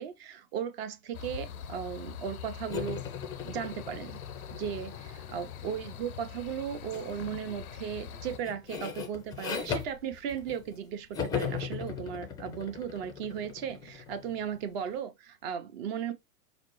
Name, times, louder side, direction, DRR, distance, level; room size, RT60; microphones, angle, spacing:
voice 1, 0.0-3.0 3.4-4.2 4.5-16.1, right 8 dB, 45° right, 0.7 m, -36 dB
sound 1, 1.1-8.4, left 8 dB, 85° left, 0.5 m, -44 dB
sound 2, 2.7-6.0 6.9-7.2 7.6-10.8 11.1-14.7, left 7 dB, 10° left, 0.4 m, -38 dB
4.9 x 2.0 x 2.9 m
figure-of-eight pair, 100°, 43 cm